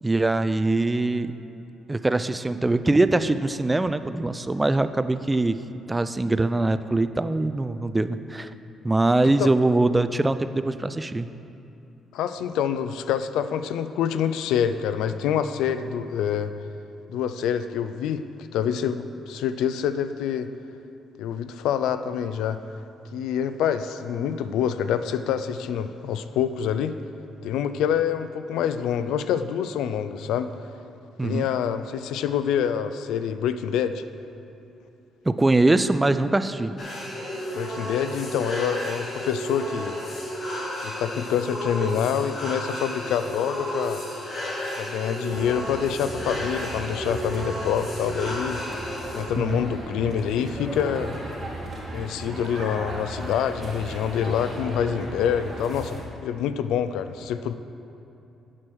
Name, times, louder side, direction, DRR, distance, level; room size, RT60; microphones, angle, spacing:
voice 1, 0.0-1.3 1.9-5.6 5.9-8.5 8.8-11.3 31.2-31.5 35.3-36.7 49.4-49.6, right 2 dB, 15° right, 12 dB, 0.3 m, -22 dB
voice 2, 12.1-16.5 17.1-18.2 18.5-20.5 21.2-22.6 23.1-26.9 27.4-30.5 31.2-34.0 37.5-40.0 40.8-44.0 44.8-48.6 49.1-51.1 51.9-57.5, left 8 dB, 90° left, 11 dB, 0.3 m, -26 dB
sound 1, 36.8-49.3, equal, 45° left, 2.1 m, -32 dB
sound 2, 45.3-56.0, right 1 dB, 35° right, 2.1 m, -36 dB
7.5 x 6.3 x 6.1 m, 2.8 s
cardioid pair, 90°, 0 cm